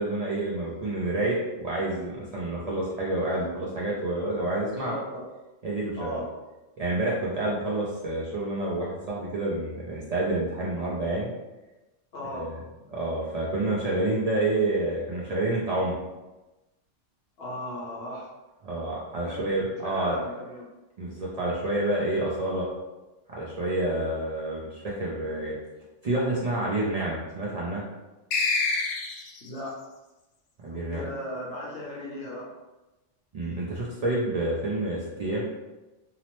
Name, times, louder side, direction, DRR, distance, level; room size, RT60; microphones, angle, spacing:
voice 1, 0.0-5.0 5.6-6.2 6.8-11.3 12.3-12.6 12.9-16.0 18.6-20.2 21.0-22.7 23.3-25.5 26.0-27.8 30.6-31.0 33.3-35.5, right 2 dB, 50° right, -6 dB, 0.5 m, -28 dB
voice 2, 4.7-5.2 6.0-6.3 12.1-12.4 17.4-18.3 19.2-19.4 19.8-20.6 29.4-29.8 30.6-32.5, left 1 dB, 60° left, -5 dB, 1.0 m, -37 dB
sound 1, 28.3-29.5, left 3 dB, 85° left, 0.9 m, -26 dB
2.8 x 2.0 x 2.9 m, 1.1 s
omnidirectional pair, 1.2 m